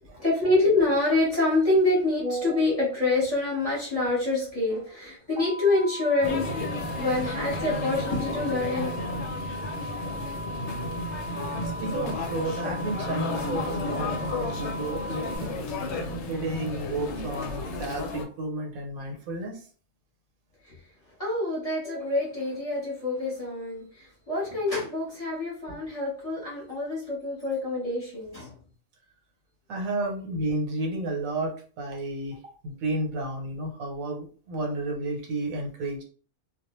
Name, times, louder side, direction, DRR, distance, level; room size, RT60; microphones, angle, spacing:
voice 1, 0.1-9.0 21.2-28.5 30.0-30.1, left 2 dB, 30° left, -6 dB, 0.9 m, -26 dB
sound 1, 5.4-15.4, equal, 30° right, 0.5 m, -38 dB
sound 2, 6.2-18.2, left 2 dB, 65° left, 0.8 m, -32 dB
voice 2, 11.8-15.5 16.3-19.7 29.7-32.4 32.6-36.0, right 2 dB, 80° right, 1 dB, 1.1 m, -32 dB
2.3 x 2.1 x 2.9 m, 0.42 s
omnidirectional pair, 1.4 m